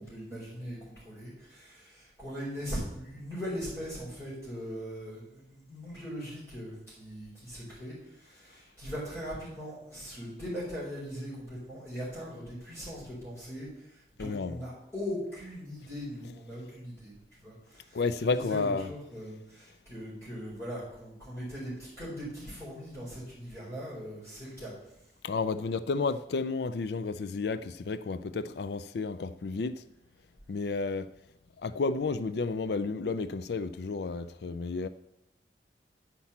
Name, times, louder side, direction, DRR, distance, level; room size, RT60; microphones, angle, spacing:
voice 1, 0.0-24.7, equal, 15° left, 4.6 m, -40 dB
voice 2, 14.2-14.6 17.9-18.9 25.2-29.8 30.5-31.1 31.6-34.9, left 4 dB, 70° left, 0.4 m, -31 dB
9.7 x 5.8 x 7.2 m
head